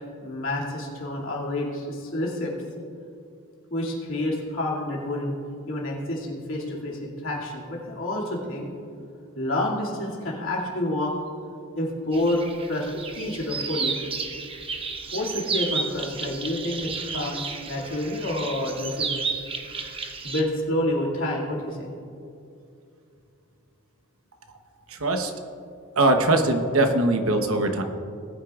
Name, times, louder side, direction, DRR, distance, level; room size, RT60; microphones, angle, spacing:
voice 1, 0.2-2.5 3.7-5.3 5.7-8.7 9.4-11.1 11.8-12.4 12.7-14.0 15.1-19.1 20.2-21.9, left 1 dB, 65° left, -4 dB, 2.5 m, -28 dB
sound 1, 12.1-20.4, right 4 dB, 25° right, 0.8 m, -32 dB
voice 2, 24.9-25.3 26.0-27.8, right 2 dB, 70° right, 5 dB, 1.0 m, -21 dB
19.5 x 9.4 x 2.5 m, 2.6 s
head